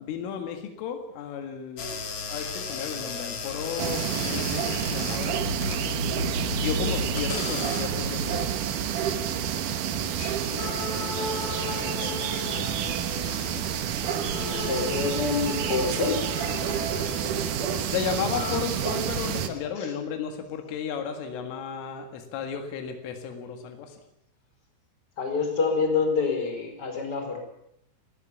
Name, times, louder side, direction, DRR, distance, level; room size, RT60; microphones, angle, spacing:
voice 1, 0.0-5.4 6.5-8.6 11.8-12.7 17.6-24.0, left 7 dB, 85° left, 5 dB, 4.5 m, -34 dB
sound 1, 1.8-8.4, left 4 dB, 45° left, 2.1 m, -33 dB
voice 2, 2.4-2.9 9.9-10.6 13.2-13.7 14.4-16.2 19.8-19.9 25.2-27.4, left 4 dB, 20° left, 4 dB, 4.7 m, -28 dB
sound 2, 3.8-19.5, right 9 dB, 70° right, 2.0 m, -29 dB
sound 3, 10.6-18.6, left 3 dB, 60° left, 5.2 m, -37 dB
19.0 x 18.0 x 8.7 m, 0.77 s
omnidirectional pair, 5.6 m